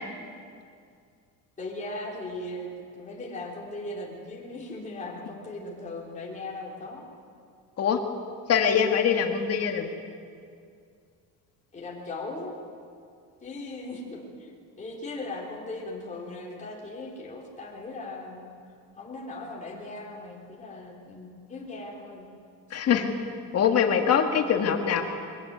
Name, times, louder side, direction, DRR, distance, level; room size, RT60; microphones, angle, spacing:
voice 1, 1.6-7.0 11.7-12.6 13.4-18.5 19.0-22.3, left 2 dB, 20° left, -3 dB, 3.5 m, -38 dB
voice 2, 8.5-9.9 22.7-23.1 23.5-25.0, left 7 dB, 45° left, 4 dB, 1.9 m, -23 dB
22.5 x 15.5 x 9.3 m, 2.3 s
cardioid pair, 140°, 36 cm